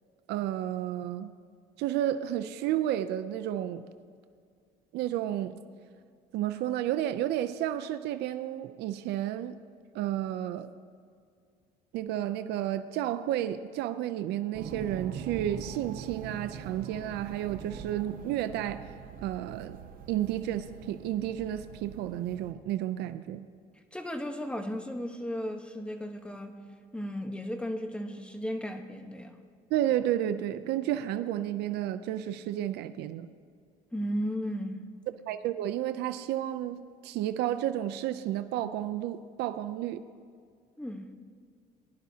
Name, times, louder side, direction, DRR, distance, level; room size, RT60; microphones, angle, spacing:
voice 1, 0.3-1.3 1.8-3.8 4.9-5.6 6.3-9.6 9.9-10.7 11.9-18.8 19.2-19.8 20.1-23.5 29.7-33.3 35.3-40.0, right 12 dB, 85° right, 10 dB, 0.5 m, -31 dB
sound 1, 14.5-22.5, right 8 dB, 55° right, 0.8 m, -43 dB
voice 2, 23.9-26.6 26.9-29.3 33.9-34.8 40.8-41.1, equal, 5° left, 5 dB, 1.1 m, -35 dB
20.5 x 10.5 x 2.8 m, 2.2 s
cardioid pair, 110°, 17 cm